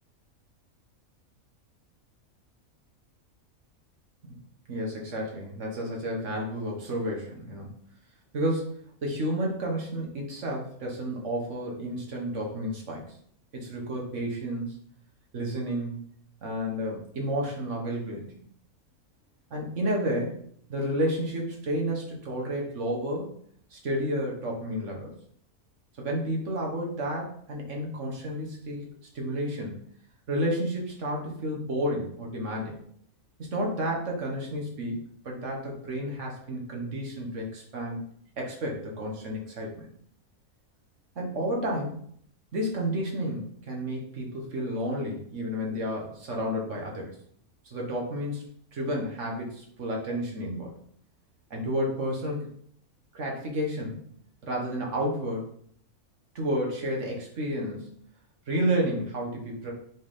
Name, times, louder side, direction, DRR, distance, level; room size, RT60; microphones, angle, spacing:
voice 1, 4.7-7.7 8.3-8.6 9.0-13.0 13.5-14.8 15.3-16.0 16.4-18.3 19.5-20.4 20.7-23.3 23.7-25.1 26.0-28.9 29.1-29.8 30.3-32.8 33.4-38.0 38.4-39.9 41.2-41.9 42.5-47.2 47.7-48.4 48.7-50.7 51.5-52.5 53.1-54.0 54.4-55.4 56.4-57.9 58.5-59.7, equal, 60° right, -1 dB, 1.6 m, -31 dB
6.1 x 4.3 x 3.6 m, 0.64 s
omnidirectional pair, 1.5 m